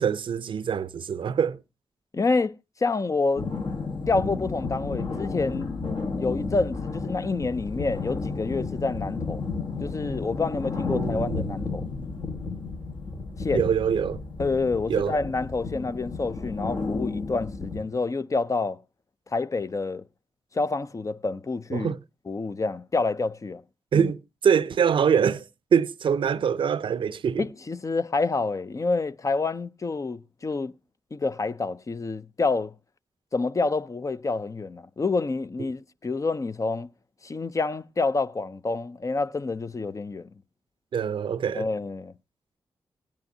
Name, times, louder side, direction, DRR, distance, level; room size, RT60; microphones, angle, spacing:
voice 1, 0.0-1.6 10.9-11.4 13.5-14.2 14.9-15.2 21.7-22.0 23.9-25.4 25.7-27.4 40.9-41.7, right 7 dB, 70° right, 0.5 m, -24 dB
voice 2, 2.1-2.5 2.8-3.5 4.1-5.7 6.2-9.4 9.8-11.8 13.4-13.6 14.4-18.8 19.3-20.0 20.5-21.9 22.3-23.6 23.9-24.1 27.4-30.7 31.1-32.7 33.3-36.9 37.2-40.3 41.5-42.1, left 3 dB, 35° left, 0.5 m, -28 dB
sound 1, 3.4-17.8, left 4 dB, 55° left, 1.2 m, -32 dB
16.5 x 10.5 x 2.7 m
supercardioid pair, 45°, 9 cm